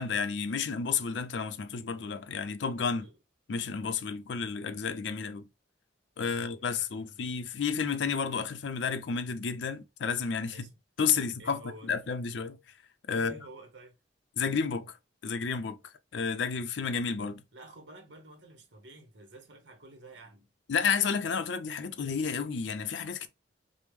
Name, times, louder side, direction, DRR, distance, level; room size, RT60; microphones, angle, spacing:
voice 1, 0.0-3.1 3.5-5.4 6.2-10.7 11.0-12.6 13.1-13.4 14.4-15.0 15.2-15.8 16.1-17.4 20.7-23.3, left 6 dB, 70° left, 0.5 m, -31 dB
voice 2, 6.2-7.2 10.5-10.7 11.1-11.9 13.1-14.0 17.5-20.5, right 2 dB, 70° right, 0.9 m, -50 dB
5.1 x 2.1 x 3.1 m
head